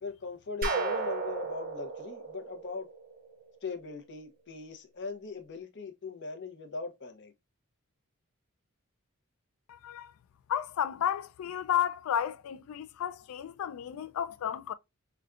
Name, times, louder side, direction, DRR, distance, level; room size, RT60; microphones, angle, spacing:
voice 1, 0.0-2.9 3.6-7.3, left 4 dB, 55° left, 0.7 m, -40 dB
sound 1, 0.6-3.4, right 4 dB, 40° right, 0.6 m, -34 dB
voice 2, 9.7-10.1 10.5-14.7, left 9 dB, 70° left, 0.3 m, -32 dB
5.0 x 2.2 x 2.4 m
head